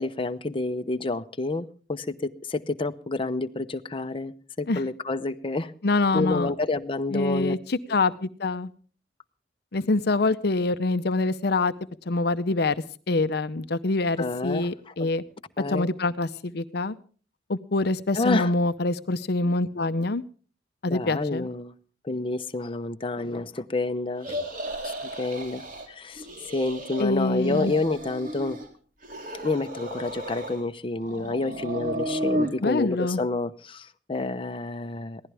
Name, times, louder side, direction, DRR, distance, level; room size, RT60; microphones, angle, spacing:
voice 1, 0.0-5.7 6.1-7.5 14.2-14.7 15.0-15.1 15.6-15.9 18.1-18.5 20.9-21.7 22.0-24.4 24.8-28.6 29.4-35.2, left 2 dB, 30° left, 0.9 m, -29 dB
voice 2, 5.8-6.5 7.1-8.7 9.7-11.7 12.1-12.7 13.1-15.2 15.7-16.9 17.5-20.2 20.8-21.5 27.0-27.7 32.6-33.2, left 2 dB, 60° left, 0.7 m, -25 dB
sound 1, 24.2-25.9 26.2-27.0 27.3-28.7 29.0-30.6 31.0-32.5, equal, 50° right, 3.8 m, -33 dB
22.5 x 16.5 x 3.5 m
head